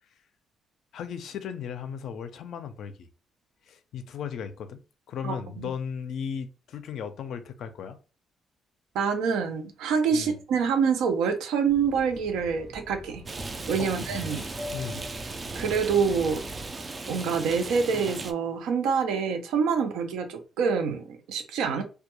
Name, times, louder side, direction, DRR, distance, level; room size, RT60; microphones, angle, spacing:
voice 1, 0.9-3.1 3.7-8.0 10.1-10.4 13.8-15.1, left 7 dB, 70° left, 0.4 m, -36 dB
voice 2, 5.2-5.7 8.9-13.2 13.7-14.4 15.5-16.4 17.1-21.8, right 6 dB, 90° right, 0.4 m, -26 dB
Fixed-wing aircraft airplane, 11.6-16.7, equal, 65° right, 0.8 m, -43 dB
Rain, 13.3-18.3, right 3 dB, 30° right, 0.3 m, -37 dB
2.2 x 2.2 x 2.9 m
cardioid pair, 90°, 0 cm